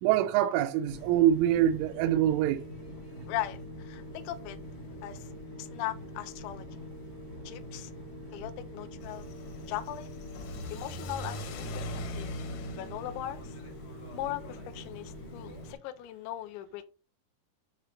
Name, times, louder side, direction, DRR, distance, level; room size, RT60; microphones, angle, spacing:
voice 1, 0.0-2.6, right 11 dB, 90° right, 3.1 m, -25 dB
sound 1, 0.8-15.7, equal, 50° left, 1.1 m, -44 dB
voice 2, 3.3-4.6 5.0-5.3 5.6-6.7 7.4-7.9 8.3-9.3 9.7-10.1 10.7-11.9 12.2-12.3 12.8-13.6 14.1-16.9, left 14 dB, 85° left, 2.8 m, -38 dB
Car / Accelerating revving vroom, 9.0-15.7, left 1 dB, 70° left, 2.0 m, -42 dB
9.7 x 3.3 x 5.2 m
omnidirectional pair, 5.4 m